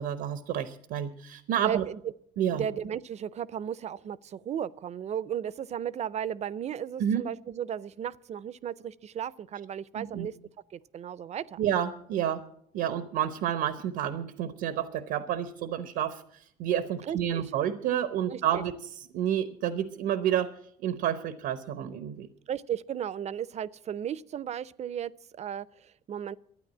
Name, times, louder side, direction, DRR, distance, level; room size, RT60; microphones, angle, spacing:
voice 1, 0.0-1.8 2.4-2.6 7.0-7.3 10.0-10.3 11.6-12.4 12.7-20.5 20.8-22.3, right 10 dB, 80° right, 0.9 m, -30 dB
voice 2, 1.6-2.0 2.5-10.3 10.7-11.6 17.0-17.4 18.3-18.6 22.5-26.4, right 9 dB, 40° right, 0.5 m, -35 dB
12.5 x 9.2 x 7.3 m
cardioid pair, 110°, 17 cm